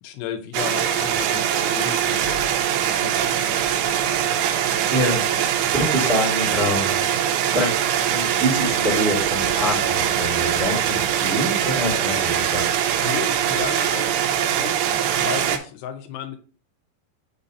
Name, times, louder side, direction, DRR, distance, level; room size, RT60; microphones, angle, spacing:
voice 1, 0.0-2.4 2.7-4.3 5.4-5.7 13.0-16.4, left 10 dB, 85° left, 8 dB, 2.8 m, -35 dB
sound 1, 0.5-15.6, right 9 dB, 85° right, 2.8 m, -22 dB
voice 2, 4.9-7.0 7.5-7.8 8.1-12.6, left 1 dB, 25° right, -3 dB, 1.2 m, -26 dB
6.5 x 2.8 x 5.2 m, 0.39 s
omnidirectional pair, 4.9 m